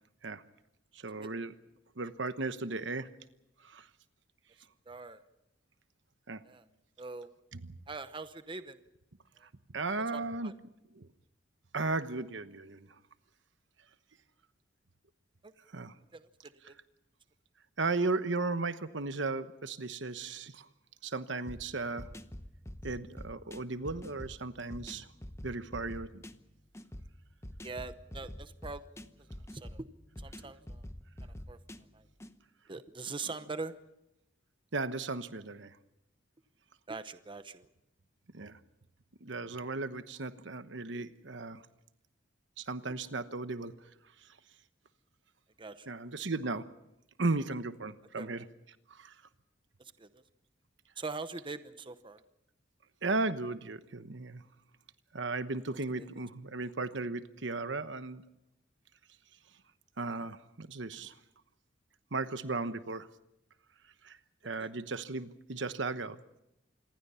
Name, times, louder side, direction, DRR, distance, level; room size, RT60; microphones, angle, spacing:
voice 1, 0.9-1.5 2.0-3.1 3.6-3.9 6.3-6.4 9.7-10.5 11.0-11.1 11.7-12.9 15.7-15.9 17.8-20.7 21.0-22.1 22.8-25.1 25.4-26.2 34.7-35.7 38.3-38.6 39.2-41.6 42.6-43.7 45.9-46.7 47.2-48.4 48.9-49.1 53.0-54.4 55.1-58.2 60.0-61.1 62.1-63.1 64.0-64.2 64.4-66.2, right 3 dB, 70° right, 11 dB, 1.1 m, -35 dB
voice 2, 4.9-5.2 6.4-6.7 7.0-7.3 7.9-8.8 9.4-9.5 10.1-10.5 15.4-15.5 16.1-16.8 27.6-28.9 29.5-29.9 30.2-30.9 31.2-31.6 31.9-32.1 32.7-33.7 36.9-37.7 45.6-45.9 48.2-48.3 49.8-50.2 51.0-52.2 56.0-56.1 64.6-64.7, right 3 dB, 25° right, 11 dB, 0.9 m, -43 dB
sound 1, 21.5-32.3, left 1 dB, 15° left, 0.9 m, -47 dB
27.0 x 20.0 x 5.7 m, 0.86 s
head